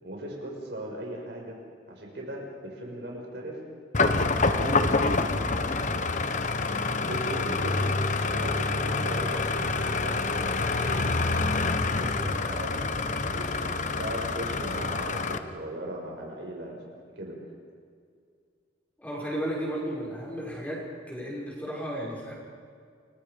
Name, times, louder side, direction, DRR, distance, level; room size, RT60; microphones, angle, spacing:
voice 1, 0.0-1.6 1.9-3.6 4.4-5.8 7.0-7.9 8.3-11.1 11.8-12.9 13.2-17.4, right 1 dB, 60° right, -1 dB, 6.1 m, -38 dB
sound 1, 3.9-15.4, left 3 dB, 40° left, 1.2 m, -27 dB
voice 2, 19.0-20.8 21.1-22.3, equal, 10° left, -5 dB, 6.7 m, -33 dB
29.5 x 23.0 x 5.3 m, 2.2 s
head